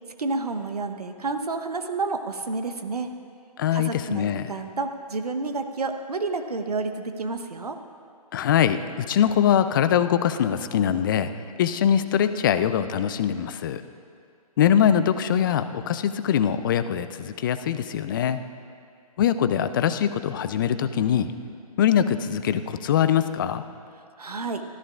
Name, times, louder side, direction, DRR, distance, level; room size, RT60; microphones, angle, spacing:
voice 1, 0.2-3.1 3.7-7.8 24.2-24.6, right 3 dB, 75° right, 7 dB, 1.1 m, -30 dB
voice 2, 3.6-4.5 8.3-11.3 11.6-13.8 14.6-18.4 19.2-21.3 21.8-23.6, left 9 dB, 35° left, 11 dB, 0.5 m, -22 dB
25.0 x 14.0 x 2.5 m, 2.3 s
figure-of-eight pair, 135°, 20 cm